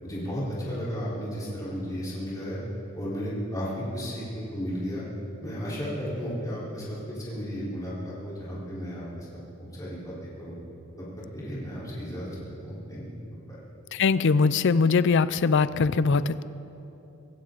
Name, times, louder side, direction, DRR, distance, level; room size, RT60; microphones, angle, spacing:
voice 1, 0.0-2.6 2.9-5.0 5.4-9.3 9.8-10.5 11.0-11.1 11.3-13.0 13.3-13.6, equal, 15° left, -9 dB, 4.2 m, -34 dB
voice 2, 13.9-16.4, left 4 dB, 55° left, 16 dB, 0.4 m, -22 dB
22.5 x 16.0 x 3.9 m, 2.9 s
head